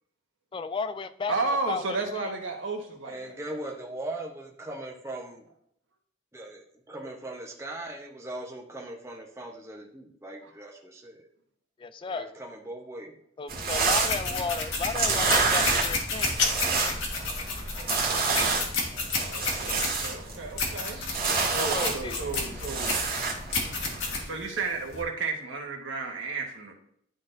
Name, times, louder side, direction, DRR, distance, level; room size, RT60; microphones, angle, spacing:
voice 1, 0.5-1.3 1.7-1.8 2.2-2.3 11.8-12.3 13.4-16.4 21.6-22.2, left 4 dB, 25° left, 12 dB, 0.3 m, -33 dB
voice 2, 1.3-3.4 19.1-21.0 21.5-22.9 24.2-26.7, right 3 dB, 75° right, 1 dB, 1.4 m, -33 dB
voice 3, 3.0-5.5 6.3-11.3 12.1-13.2 16.2-16.7 23.6-23.7, right 1 dB, 15° right, -1 dB, 0.9 m, -40 dB
sound 1, 13.5-24.2, right 4 dB, 50° right, 2.0 m, -29 dB
sound 2, 13.9-25.0, left 3 dB, 80° left, 1.7 m, -32 dB
sound 3, 15.9-17.0, left 4 dB, 60° left, 1.1 m, -30 dB
12.0 x 4.0 x 2.6 m, 0.68 s
head